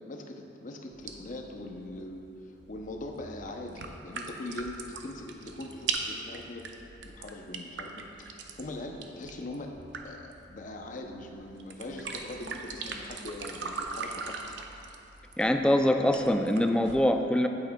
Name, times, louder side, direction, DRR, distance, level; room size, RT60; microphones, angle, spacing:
voice 1, 0.0-2.3 2.7-6.6 7.0-9.8 10.0-14.4, left 2 dB, 45° left, 3 dB, 0.6 m, -41 dB
sound 1, 0.9-17.0, right 4 dB, 70° right, 0.6 m, -41 dB
voice 2, 15.4-17.5, left 1 dB, 5° left, 5 dB, 0.3 m, -24 dB
9.0 x 8.5 x 2.3 m, 2.7 s
head